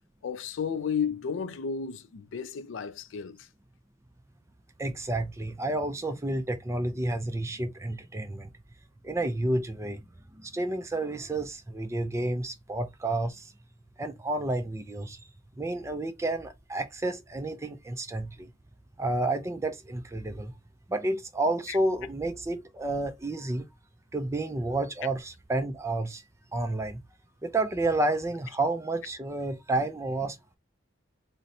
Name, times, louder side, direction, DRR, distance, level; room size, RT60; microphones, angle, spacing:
voice 1, 0.2-3.5 21.7-21.8, left 6 dB, 65° left, 0.4 m, -33 dB
voice 2, 4.8-8.5 9.0-10.0 10.3-13.5 14.0-15.2 15.6-18.5 19.0-20.5 20.9-23.7 24.1-26.2 26.5-27.0 27.4-30.6, right 2 dB, 15° right, 0.3 m, -30 dB
4.0 x 2.1 x 2.6 m
head